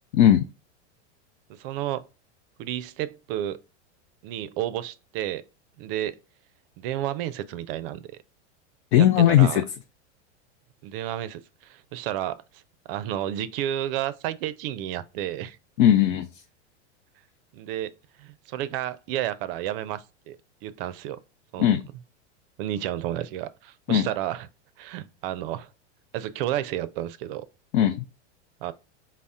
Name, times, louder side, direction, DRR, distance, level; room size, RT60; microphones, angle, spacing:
voice 1, 0.1-0.4 8.9-9.6 15.8-16.3 21.6-21.8 23.9-24.1 27.7-28.0, left 11 dB, 65° left, 0.5 m, -18 dB
voice 2, 1.5-2.1 2.6-3.6 4.2-5.5 5.8-6.2 6.8-8.2 9.0-9.6 10.8-12.4 12.9-15.6 17.5-17.9 18.2-20.4 20.6-21.2 21.5-21.7 22.6-24.5 24.8-25.7 26.1-27.5 28.6-28.7, right 12 dB, 55° right, 0.4 m, -31 dB
4.0 x 2.0 x 3.5 m
hypercardioid pair, 120°, 35 cm